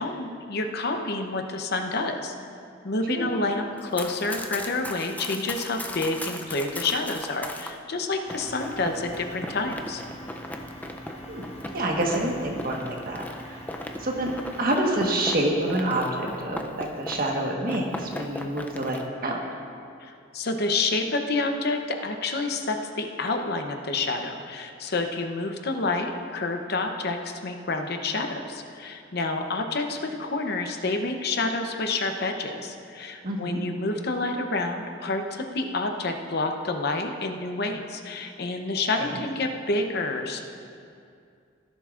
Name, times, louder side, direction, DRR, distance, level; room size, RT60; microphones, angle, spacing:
voice 1, 0.0-2.3 2.8-10.0 20.0-40.4, left 3 dB, 55° left, 4 dB, 0.8 m, -28 dB
Run, 3.8-7.7 8.3-17.4 17.7-19.0, left 1 dB, 10° left, 0.5 m, -38 dB
sound 1, 8.2-14.7, equal, 35° left, 1.6 m, -43 dB
voice 2, 11.3-13.7 14.0-19.4 33.2-33.6 38.9-39.1, right 1 dB, 50° right, 0 dB, 1.4 m, -27 dB
17.0 x 10.5 x 2.5 m, 2.4 s
head